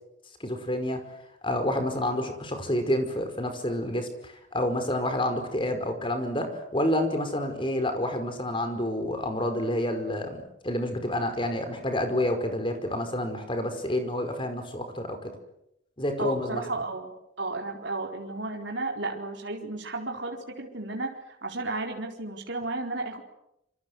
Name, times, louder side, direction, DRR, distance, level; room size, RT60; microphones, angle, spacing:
voice 1, 0.4-1.1 1.4-15.3 16.0-16.6, left 1 dB, 25° left, 7 dB, 5.1 m, -29 dB
voice 2, 16.2-23.2, right 2 dB, 65° right, 1 dB, 4.4 m, -33 dB
27.5 x 25.0 x 8.1 m, 0.81 s
head